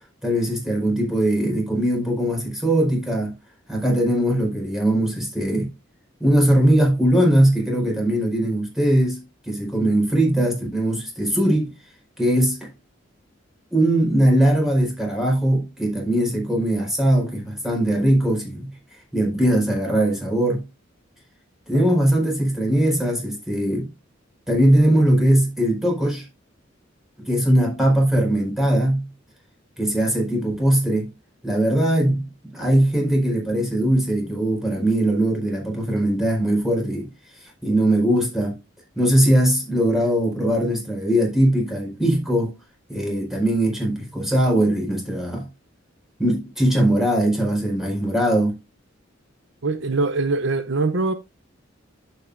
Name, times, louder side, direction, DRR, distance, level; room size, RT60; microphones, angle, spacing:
voice 1, 0.2-3.3 3.7-5.7 6.2-11.7 12.2-12.7 13.7-18.7 19.1-20.6 21.7-23.9 24.5-26.2 27.3-29.1 29.8-31.1 31.4-32.2 32.5-37.1 37.6-38.6 39.0-42.5 42.9-45.5 46.2-48.5, right 1 dB, ahead, 4.4 m, -20 dB
voice 2, 49.6-51.1, right 3 dB, 70° right, 0.8 m, -23 dB
10.5 x 7.8 x 2.6 m
head